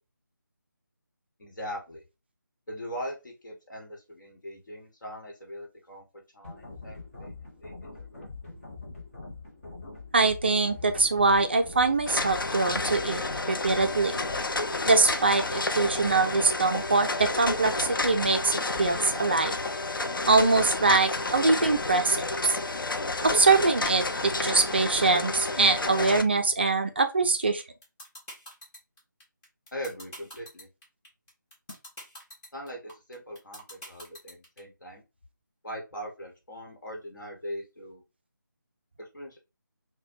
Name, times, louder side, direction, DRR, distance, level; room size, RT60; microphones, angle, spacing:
voice 1, 1.4-2.0 2.7-6.0 6.3-7.7 8.0-8.3 29.7-30.7 32.5-35.0 35.6-38.0 39.0-39.4, equal, 65° left, 1.2 m, -40 dB
sound 1, 6.4-14.4, left 3 dB, 40° left, 0.8 m, -43 dB
voice 2, 10.1-13.2 13.5-14.1 14.9-19.5 20.3-22.3 23.2-27.6, right 3 dB, 30° right, 0.3 m, -23 dB
sound 2, 12.1-26.2, left 2 dB, 85° left, 0.5 m, -30 dB
sound 3, 27.6-34.6, equal, 10° left, 0.8 m, -44 dB
4.0 x 2.1 x 2.6 m
figure-of-eight pair, 165°, 11 cm